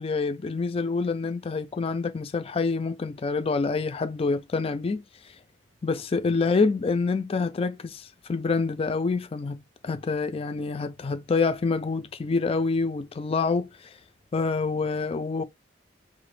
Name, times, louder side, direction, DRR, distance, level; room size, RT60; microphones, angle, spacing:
voice 1, 0.0-5.0 5.8-13.7 14.3-15.4, left 4 dB, 30° left, 0.4 m, -27 dB
3.0 x 2.0 x 3.2 m
head